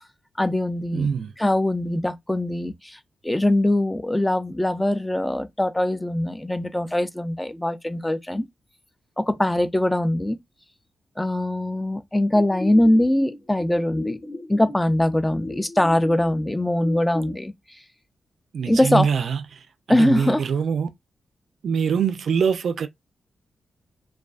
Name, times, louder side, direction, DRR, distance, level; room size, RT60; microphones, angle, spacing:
voice 1, 0.4-1.1 1.4-8.5 9.2-10.4 11.2-14.2 14.5-17.5 18.7-19.1 19.9-20.4, left 1 dB, 15° left, 0.4 m, -22 dB
voice 2, 0.9-1.3 18.5-20.9 21.6-22.9, right 6 dB, 75° right, 0.3 m, -24 dB
sound 1, 12.3-17.3, left 2 dB, 40° left, 1.0 m, -36 dB
2.4 x 2.2 x 2.3 m
supercardioid pair, 50°, 0 cm